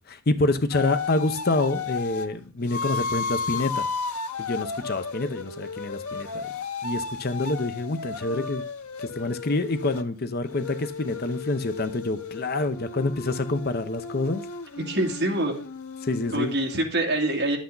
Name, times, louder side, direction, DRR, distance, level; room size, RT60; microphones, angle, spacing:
voice 1, 0.1-3.9 4.4-6.5 6.8-8.6 9.0-14.4 16.0-16.5, left 2 dB, 45° left, 0.8 m, -27 dB
sound 1, 0.7-2.3 2.7-10.0 10.5-16.8, left 5 dB, 85° left, 1.0 m, -34 dB
voice 2, 14.8-15.5 16.3-17.6, right 1 dB, 50° right, 2.5 m, -25 dB
11.5 x 8.3 x 3.9 m
head